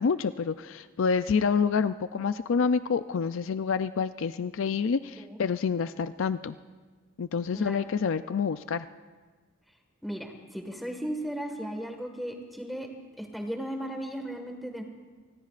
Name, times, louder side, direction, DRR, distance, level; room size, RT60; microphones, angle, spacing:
voice 1, 0.0-6.6 7.2-8.9, left 5 dB, 70° left, 12 dB, 0.4 m, -28 dB
voice 2, 10.0-12.9 13.2-14.8, equal, ahead, 2 dB, 1.6 m, -36 dB
28.5 x 19.5 x 2.5 m, 1.4 s
head